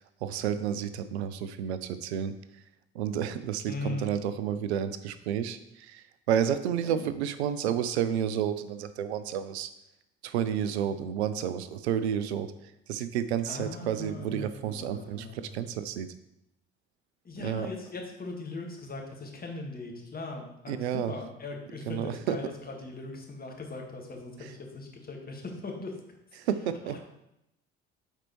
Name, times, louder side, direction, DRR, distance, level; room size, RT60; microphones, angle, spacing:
voice 1, 0.0-2.3 2.9-9.7 10.2-16.1 17.4-17.7 20.7-21.1 21.9-22.4 24.4-24.5 26.4-27.0, right 9 dB, 80° right, 12 dB, 0.5 m, -31 dB
voice 2, 3.7-4.1 6.8-7.1 13.4-15.6 17.2-25.9 26.9-27.0, left 3 dB, 25° left, 1 dB, 1.7 m, -39 dB
8.8 x 4.4 x 3.1 m, 0.83 s
figure-of-eight pair, 55°, 33 cm